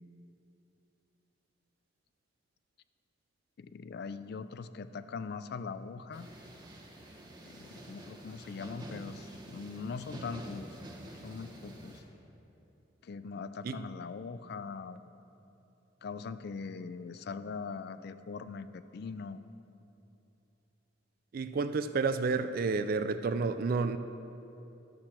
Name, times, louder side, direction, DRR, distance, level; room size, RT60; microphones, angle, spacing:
voice 1, 3.6-6.3 7.4-10.8 11.2-12.0 13.0-15.1 16.0-19.4, left 5 dB, 55° left, 13 dB, 0.3 m, -41 dB
sound 1, 6.1-12.0, right 1 dB, 25° right, 1.2 m, -48 dB
voice 2, 21.3-24.0, right 4 dB, 50° right, 11 dB, 0.3 m, -30 dB
12.0 x 7.8 x 4.4 m, 2.9 s
head